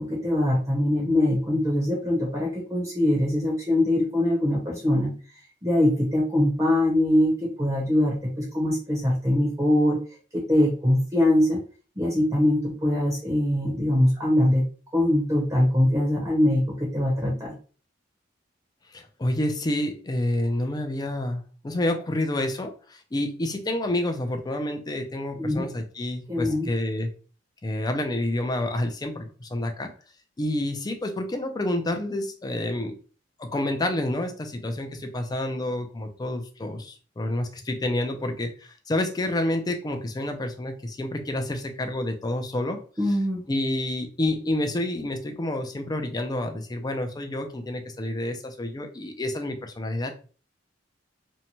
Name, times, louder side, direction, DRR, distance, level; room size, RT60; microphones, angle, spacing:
voice 1, 0.1-5.1 5.6-10.0 10.5-11.6 12.0-14.6 14.9-17.5 25.3-25.7 26.3-26.7 43.0-43.4, left 1 dB, 20° right, -2 dB, 0.7 m, -22 dB
voice 2, 18.9-27.1 27.6-29.9 30.4-33.0 33.4-42.8 43.5-50.1, left 1 dB, 20° left, 5 dB, 0.4 m, -29 dB
2.7 x 2.1 x 2.9 m, 0.38 s
head